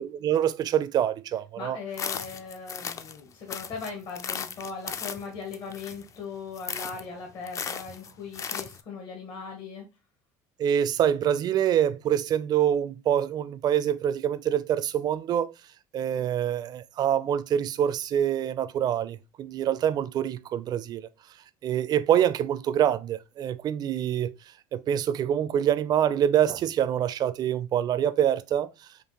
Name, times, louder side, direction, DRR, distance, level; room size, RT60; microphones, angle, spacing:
voice 1, 0.0-1.8 10.6-15.5 15.9-21.1 21.6-24.3 24.7-28.7, right 10 dB, 40° right, 0.4 m, -25 dB
voice 2, 1.6-9.8, left 5 dB, 55° left, 1.3 m, -39 dB
sound 1, 1.9-3.2 3.5-6.2 6.5-7.0 7.5-8.8, left 7 dB, 30° left, 0.4 m, -36 dB
5.1 x 2.4 x 2.9 m
supercardioid pair, 110°, 10 cm